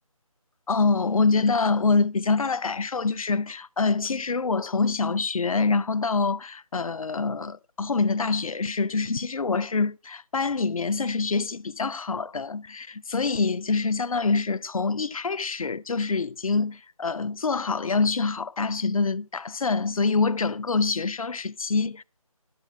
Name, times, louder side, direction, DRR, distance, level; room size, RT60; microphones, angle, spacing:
voice 1, 0.7-22.0, left 4 dB, 65° left, 0.5 m, -25 dB
11.0 x 8.2 x 5.4 m
figure-of-eight pair, 160°, 19 cm